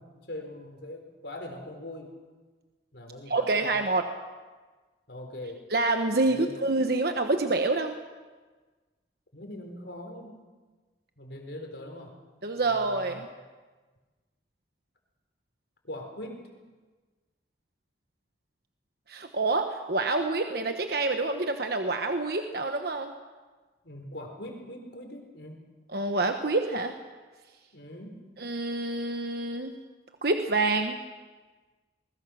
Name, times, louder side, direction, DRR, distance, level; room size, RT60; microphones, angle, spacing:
voice 1, 0.0-2.1 2.9-3.8 5.1-5.6 6.2-6.7 9.3-10.4 11.2-12.1 12.6-13.3 15.8-16.5 23.8-25.6 27.7-28.3, left 1 dB, 70° left, 3 dB, 4.2 m, -42 dB
voice 2, 3.3-4.1 5.7-7.9 12.4-13.3 19.1-23.1 25.9-26.9 28.4-29.7 30.2-31.0, right 3 dB, 60° right, 5 dB, 1.2 m, -27 dB
22.5 x 21.0 x 6.4 m, 1.3 s
head